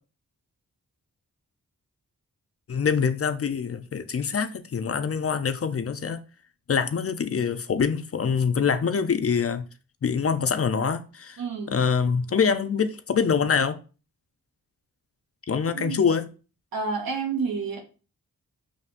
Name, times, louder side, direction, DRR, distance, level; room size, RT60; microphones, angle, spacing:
voice 1, 2.7-6.2 6.7-9.6 10.0-11.4 11.7-13.8 15.5-16.3, left 6 dB, 40° left, 0.5 m, -25 dB
voice 2, 11.4-11.8 15.8-16.0 16.7-17.8, right 5 dB, 70° right, 1.0 m, -29 dB
5.2 x 3.2 x 2.5 m
cardioid pair, 45°, 36 cm